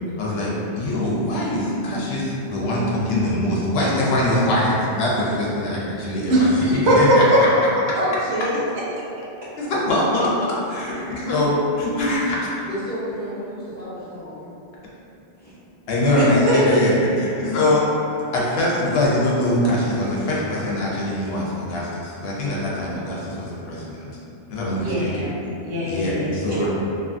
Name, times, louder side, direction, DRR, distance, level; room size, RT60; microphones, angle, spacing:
voice 1, 0.2-7.5 9.6-10.3 10.7-12.4 15.9-17.9 18.3-24.1 24.5-25.3 25.8-26.7, left 1 dB, 70° left, -5 dB, 0.8 m, -23 dB
voice 2, 6.3-7.6 7.9-8.5 11.0-11.3 16.2-16.8 24.7-26.3 26.6-26.7, equal, 85° right, -6 dB, 1.0 m, -20 dB
voice 3, 12.7-14.5 15.4-15.6, equal, 15° left, -11 dB, 0.4 m, -32 dB
2.6 x 2.4 x 2.4 m, 2.7 s
omnidirectional pair, 1.1 m